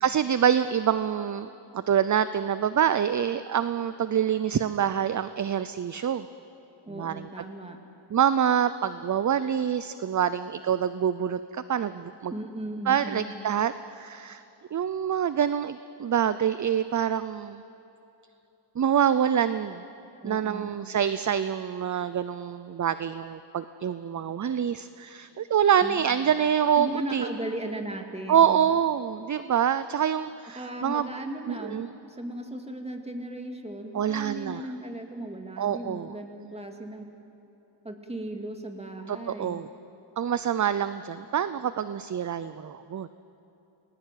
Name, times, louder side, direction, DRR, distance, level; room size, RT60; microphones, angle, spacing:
voice 1, 0.0-6.3 6.9-7.3 8.1-12.3 12.9-14.4 14.7-17.6 18.8-19.8 20.2-27.3 28.3-31.1 31.5-31.9 33.9-34.6 35.6-36.1 39.1-39.7 40.2-43.1, right 9 dB, 40° right, 13 dB, 0.6 m, -26 dB
voice 2, 6.8-7.8 12.3-13.3 20.2-20.7 25.8-26.0 26.8-28.6 30.6-31.8 32.1-37.1 37.8-39.6, right 1 dB, 15° right, 4 dB, 2.4 m, -36 dB
30.0 x 20.5 x 9.2 m, 2.9 s
wide cardioid pair, 155°, 47 cm